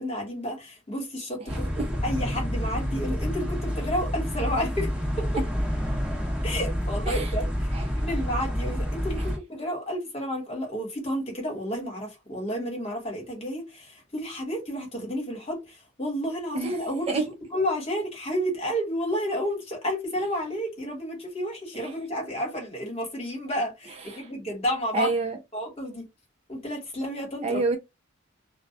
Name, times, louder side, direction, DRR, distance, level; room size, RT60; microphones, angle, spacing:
voice 1, 0.0-4.9 5.2-5.3 6.4-7.5 8.0-15.6 16.0-17.2 17.5-25.1 25.5-26.1 26.5-27.6, equal, 30° left, 1.1 m, -31 dB
voice 2, 1.4-1.9 7.1-7.3 7.7-7.9 16.5-16.8 17.1-17.2 24.1-24.3 24.9-25.4 27.4-27.8, right 3 dB, 30° right, 0.4 m, -28 dB
sound 1, 1.5-9.4, equal, 5° right, 0.9 m, -28 dB
2.3 x 2.0 x 2.7 m
head